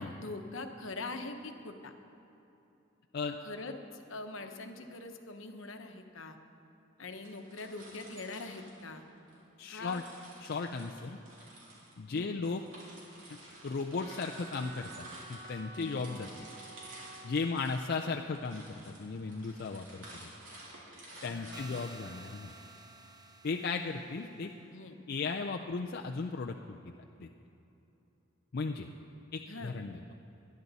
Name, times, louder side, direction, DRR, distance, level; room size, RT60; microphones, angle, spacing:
voice 1, 0.0-1.9 3.4-6.4 7.0-9.0 9.7-10.0 12.1-12.3 15.8-16.1 21.3-21.8 24.7-25.0 29.5-29.8, left 3 dB, 75° left, 6 dB, 1.0 m, -43 dB
sound 1, 7.1-9.4 9.8-22.5, right 1 dB, 75° right, 3.4 m, -52 dB
voice 2, 9.6-10.0 10.4-11.2 12.0-12.6 13.6-16.3 17.2-20.3 21.2-22.5 23.4-24.5 25.1-26.8 27.2-27.3 28.5-28.9 29.3-30.0, left 4 dB, 50° left, 2 dB, 0.5 m, -36 dB
Wind instrument woodwind instrument, 14.0-18.2, right 3 dB, 35° left, 1.1 m, -51 dB
sound 2, 21.5-24.4, right 2 dB, 20° right, 0.8 m, -52 dB
19.5 x 10.5 x 4.1 m, 2.9 s
head